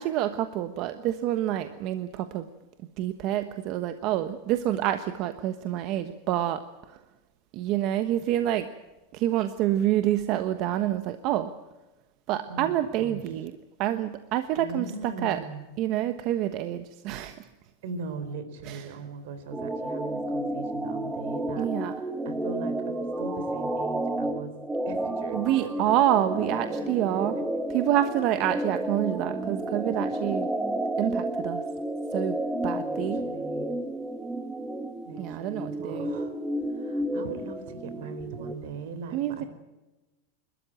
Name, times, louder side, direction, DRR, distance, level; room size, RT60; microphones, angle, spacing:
voice 1, 0.0-2.5 3.0-6.6 6.9-7.0 7.5-8.7 9.1-11.5 12.3-13.5 13.8-15.4 15.8-17.5 18.7-18.8 21.6-21.9 25.3-27.4 27.7-30.5 31.0-31.6 32.1-32.4 32.6-33.2 35.2-36.1 39.1-39.4, right 12 dB, 45° right, 9 dB, 1.2 m, -27 dB
voice 2, 12.5-13.2 14.6-15.7 17.8-24.5 24.9-27.4 32.7-33.7 35.0-36.4 36.7-39.5, right 4 dB, 70° right, 11 dB, 4.1 m, -40 dB
sound 1, 19.5-38.5, right 1 dB, 10° right, 1.4 m, -31 dB
29.0 x 13.5 x 9.0 m, 1.1 s
supercardioid pair, 155°, 0 cm